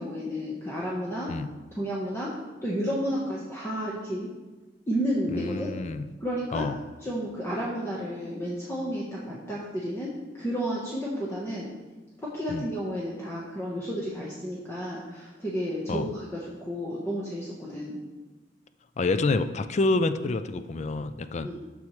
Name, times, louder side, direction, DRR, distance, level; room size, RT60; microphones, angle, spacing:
voice 1, 0.0-1.3 1.8-2.3 2.6-4.3 4.9-5.7 6.2-6.7 7.0-11.7 12.2-18.0 21.4-21.5, equal, 15° left, -6 dB, 1.2 m, -31 dB
voice 2, 5.3-6.1 6.5-6.8 12.5-12.6 15.9-16.1 19.0-21.5, left 3 dB, 40° left, 11 dB, 0.4 m, -27 dB
11.5 x 7.3 x 3.2 m, 1.2 s
head